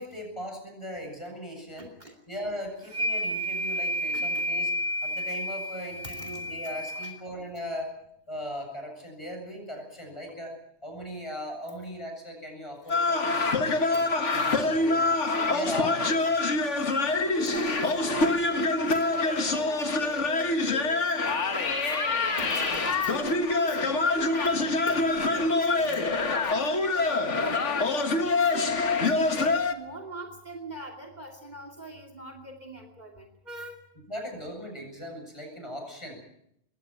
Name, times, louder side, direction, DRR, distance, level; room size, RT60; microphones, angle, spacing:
voice 1, 0.0-1.9 2.3-4.7 5.0-7.9 8.3-14.0 14.5-15.0 15.5-16.2 22.7-23.0 34.1-36.2, equal, 25° left, 2 dB, 7.8 m, -38 dB
voice 2, 1.8-2.1 4.1-4.5 6.0-6.5 6.9-7.1 13.9-14.1 14.5-15.6 16.0-22.1 22.4-33.8, right 1 dB, 35° right, 5 dB, 2.8 m, -42 dB
sound 1, 2.9-7.1, equal, 85° right, 5.8 m, -31 dB
sound 2, 12.9-29.7, left 3 dB, 75° left, 2.0 m, -25 dB
22.0 x 17.0 x 9.1 m, 0.76 s
omnidirectional pair, 1.3 m